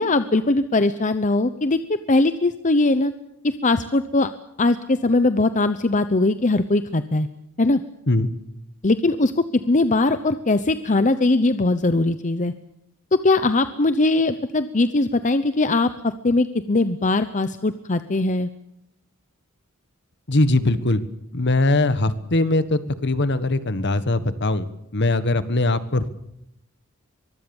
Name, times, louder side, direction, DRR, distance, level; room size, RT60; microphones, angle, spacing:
voice 1, 0.0-1.8 2.1-3.1 3.4-4.3 4.6-7.3 7.6-7.8 8.8-12.5 13.1-18.5, left 2 dB, 35° left, 11 dB, 0.8 m, -20 dB
voice 2, 20.3-21.0 21.3-26.1, left 2 dB, 55° left, 13 dB, 1.5 m, -21 dB
24.0 x 23.0 x 7.2 m, 0.78 s
head